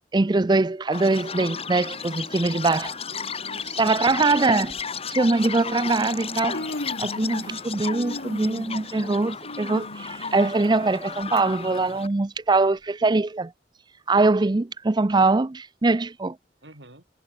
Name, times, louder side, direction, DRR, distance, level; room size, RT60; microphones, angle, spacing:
voice 1, 0.1-3.0 3.8-4.7 5.1-6.7 7.0-13.5 14.1-16.4, right 3 dB, 25° right, 0.5 m, -22 dB
Chirp tweet, 0.9-12.1, left 6 dB, 35° left, 3.4 m, -34 dB
Human voice, 2.7-2.9 3.9-4.0 4.6-4.8 5.8-5.9 6.2-7.6 7.9-11.4 11.8-11.9 12.8-12.9, left 1 dB, 65° left, 1.8 m, -38 dB
voice 2, 3.1-4.7 16.6-17.0, right 2 dB, 85° right, 7.5 m, -46 dB
head